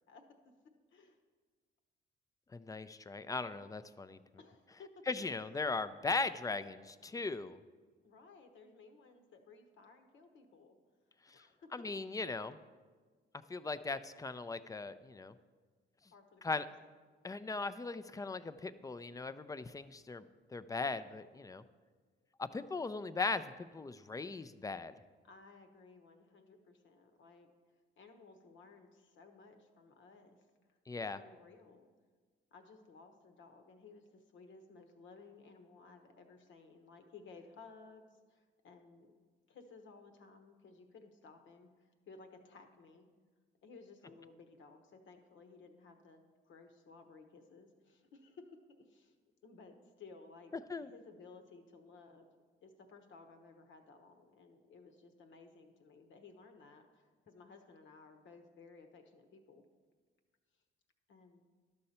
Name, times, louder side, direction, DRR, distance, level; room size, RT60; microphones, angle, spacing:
voice 1, 2.5-4.2 5.1-7.6 11.3-11.5 11.7-12.6 13.5-15.3 16.4-16.7 17.2-21.6 22.4-24.9 30.9-31.2 50.7-50.9, left 3 dB, 15° left, 12 dB, 0.4 m, -39 dB
voice 2, 4.4-5.1 8.0-10.8 11.3-11.8 16.1-16.7 25.2-27.5 28.0-31.9 32.5-39.1 39.5-43.1 43.6-49.1 49.4-50.5 50.8-52.3 52.6-59.6 61.1-61.4, left 4 dB, 70° left, 6 dB, 1.1 m, -58 dB
11.5 x 6.7 x 4.2 m, 1.4 s
cardioid pair, 90°, 20 cm